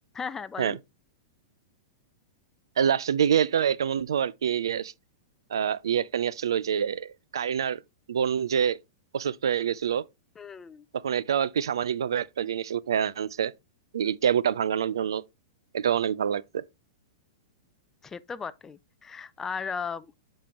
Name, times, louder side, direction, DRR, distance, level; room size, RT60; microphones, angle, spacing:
voice 1, 0.1-0.8 10.4-10.8 18.0-20.1, left 6 dB, 15° left, 0.5 m, -36 dB
voice 2, 2.8-4.9 5.5-7.8 8.1-8.8 9.1-10.0 10.9-13.5 13.9-15.2 15.7-16.6, right 8 dB, 85° right, 0.4 m, -26 dB
8.4 x 5.3 x 2.9 m
hypercardioid pair, 125°, 2 cm